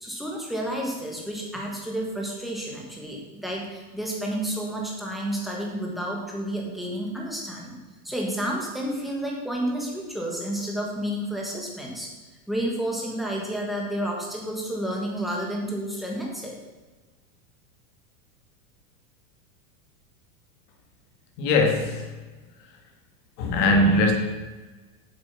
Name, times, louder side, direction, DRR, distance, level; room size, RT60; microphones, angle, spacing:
voice 1, 0.0-7.8 8.0-12.1 12.5-16.6, right 1 dB, ahead, -2 dB, 1.4 m, -30 dB
voice 2, 21.4-22.0 23.4-24.1, left 2 dB, 40° left, 3 dB, 1.8 m, -20 dB
7.6 x 7.5 x 5.8 m, 1.3 s
supercardioid pair, 165°, 44 cm